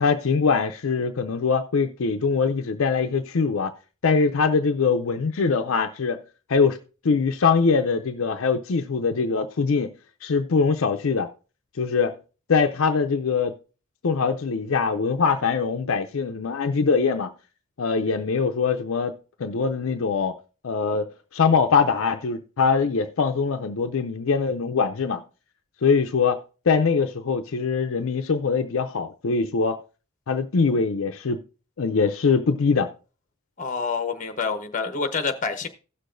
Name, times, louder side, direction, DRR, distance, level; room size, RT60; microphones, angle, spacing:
voice 1, 0.0-3.7 4.0-6.2 6.5-6.8 7.0-9.9 10.2-11.3 11.8-12.1 12.5-13.5 14.0-17.3 17.8-19.1 19.4-20.3 20.6-25.2 25.8-26.4 26.7-29.8 30.3-31.4 31.8-32.9, left 5 dB, 70° left, 0.5 m, -22 dB
voice 2, 33.6-35.7, left 4 dB, 35° left, 0.9 m, -27 dB
16.5 x 6.6 x 2.5 m
head